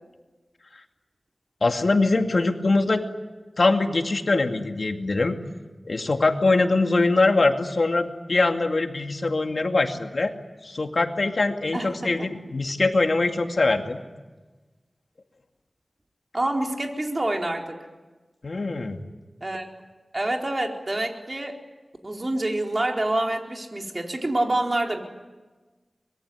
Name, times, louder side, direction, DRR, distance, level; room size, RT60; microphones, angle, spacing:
voice 1, 1.6-3.0 3.6-5.4 5.9-10.3 10.6-14.0 18.4-19.0, left 3 dB, 65° left, 5 dB, 2.4 m, -22 dB
voice 2, 11.7-12.3 16.3-17.8 19.4-19.6 20.1-21.6 22.0-25.0, right 1 dB, 40° right, 2 dB, 4.4 m, -27 dB
25.0 x 22.5 x 9.6 m, 1.2 s
wide cardioid pair, 60°, 0 cm